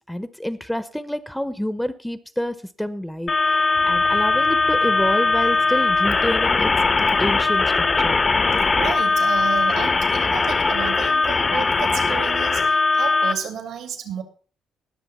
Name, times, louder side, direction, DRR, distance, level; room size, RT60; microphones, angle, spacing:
voice 1, 0.1-3.3 3.8-6.7 7.2-8.2, equal, 5° left, 14 dB, 0.7 m, -27 dB
sound 1, 3.3-13.3, left 3 dB, 30° left, 0.8 m, -20 dB
sound 2, 3.7-11.2, left 8 dB, 75° left, 3.4 m, -44 dB
voice 2, 8.6-14.2, right 8 dB, 85° right, 7 dB, 2.7 m, -32 dB
19.0 x 6.6 x 4.2 m, 0.40 s
cardioid pair, 90°, 0 cm